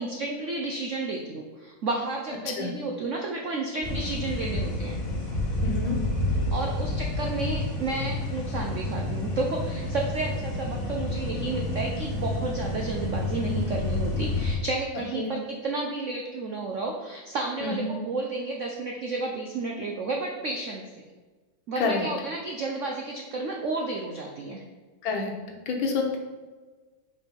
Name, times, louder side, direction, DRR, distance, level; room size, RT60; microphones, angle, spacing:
voice 1, 0.0-5.0 6.5-20.8 21.7-24.6, right 3 dB, 75° right, 0 dB, 0.7 m, -31 dB
sound 1, 3.8-14.6, left 2 dB, 45° left, 1.7 m, -29 dB
voice 2, 5.6-6.0 15.2-15.3 17.6-17.9 21.8-22.1 25.0-26.2, left 4 dB, 80° left, 2 dB, 1.7 m, -28 dB
5.3 x 4.8 x 4.5 m, 1.3 s
omnidirectional pair, 2.2 m